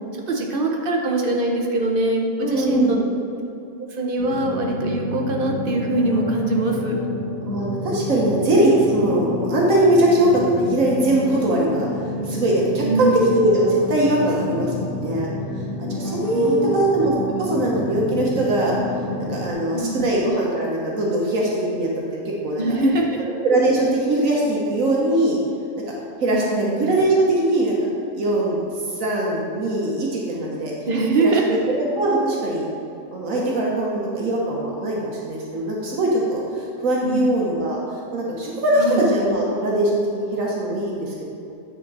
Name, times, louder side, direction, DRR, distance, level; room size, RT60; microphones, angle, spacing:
voice 1, 0.3-3.0 3.8-7.0 12.8-13.5 16.3-16.8 19.7-20.0 22.6-23.2 26.3-26.7 30.9-31.7 37.0-37.3 38.8-39.0, right 2 dB, 45° right, 1 dB, 0.8 m, -22 dB
voice 2, 2.4-3.0 7.4-11.9 12.2-15.3 15.9-17.1 17.4-18.8 19.2-22.8 23.2-25.4 26.2-27.7 28.1-28.6 29.0-30.7 31.2-32.7 33.1-37.8 38.1-41.2, right 1 dB, 65° right, -3 dB, 1.4 m, -21 dB
sound 1, 4.2-19.5, left 2 dB, 55° left, 1.9 m, -29 dB
9.3 x 4.4 x 3.9 m, 2.6 s
omnidirectional pair, 1.5 m